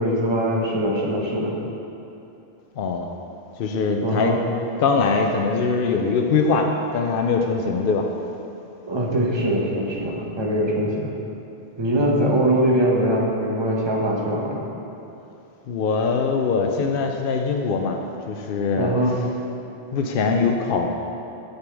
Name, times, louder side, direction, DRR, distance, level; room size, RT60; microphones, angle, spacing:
voice 1, 0.0-1.5 4.0-4.4 8.9-11.1 11.8-14.6 18.8-19.2, right 1 dB, 25° right, -2 dB, 1.0 m, -22 dB
voice 2, 2.8-3.1 3.6-4.4 4.8-8.1 15.7-18.9 19.9-20.9, left 4 dB, 65° left, 3 dB, 0.7 m, -22 dB
6.9 x 6.7 x 4.6 m, 2.8 s
omnidirectional pair, 1.1 m